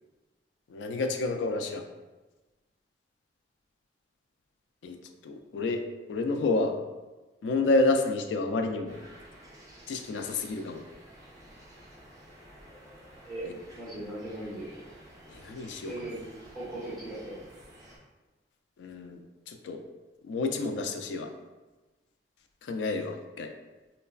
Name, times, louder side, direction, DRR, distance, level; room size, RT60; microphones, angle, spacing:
voice 1, 0.7-1.8 4.8-5.0 5.2-5.8 6.1-6.7 7.4-9.0 9.9-10.8 13.4-13.5 15.3-15.9 18.8-19.2 19.5-19.8 20.2-21.3 22.6-23.5, left 3 dB, 85° left, 5 dB, 0.3 m, -29 dB
sound 1, 8.9-18.0, right 1 dB, 20° right, 0.5 m, -52 dB
voice 2, 13.3-14.7 15.8-16.2 16.5-17.4, right 1 dB, ahead, -11 dB, 1.1 m, -38 dB
3.1 x 2.1 x 2.3 m, 1.2 s
head